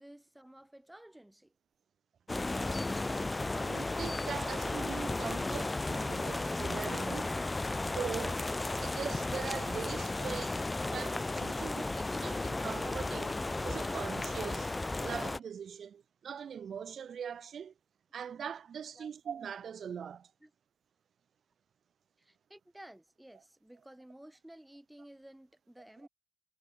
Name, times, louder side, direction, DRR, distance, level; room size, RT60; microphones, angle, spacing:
voice 1, 0.0-1.5 12.5-12.7 19.0-19.1 20.4-20.5 22.2-26.1, right 1 dB, 5° right, 1.2 m, -54 dB
sound 1, 2.3-15.4, left 2 dB, 15° left, 0.5 m, -34 dB
voice 2, 3.5-7.3 7.8-10.6 10.9-14.7 15.0-17.7 18.1-20.3 23.3-23.4 26.0-26.1, right 7 dB, 55° right, 0.4 m, -42 dB
cardioid pair, 90°, 0 cm